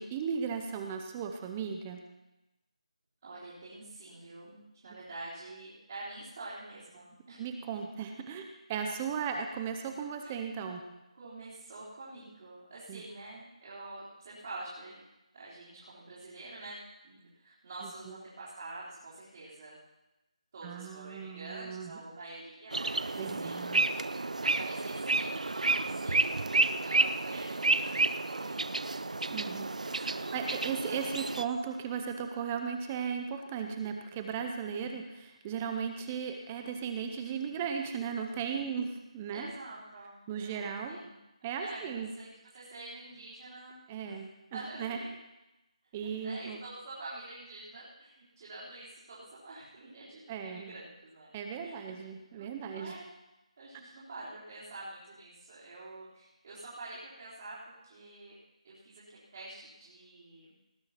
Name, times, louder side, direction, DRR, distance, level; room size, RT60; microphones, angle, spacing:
voice 1, 0.0-2.0 7.4-8.4 8.7-10.8 12.9-13.0 18.1-18.2 20.6-22.0 23.2-23.8 29.3-39.5 40.3-41.0 41.4-42.1 43.9-45.0 45.9-46.6 50.3-50.7 51.3-53.0, right 6 dB, 10° right, 5 dB, 0.7 m, -36 dB
voice 2, 3.2-7.4 7.7-7.8 10.2-10.4 11.1-15.0 15.3-16.8 17.0-19.8 20.5-24.0 24.4-26.3 26.8-28.7 29.3-31.3 37.2-37.6 39.3-41.2 41.6-42.3 42.5-44.2 44.5-45.1 45.8-51.3 51.6-52.0 52.4-53.1 53.6-58.4 58.6-60.5, right 2 dB, 35° right, -9 dB, 3.9 m, -47 dB
sound 1, 22.7-31.4, right 3 dB, 90° right, 0.6 m, -30 dB
18.5 x 7.8 x 5.8 m, 0.97 s
figure-of-eight pair, 175°, 4 cm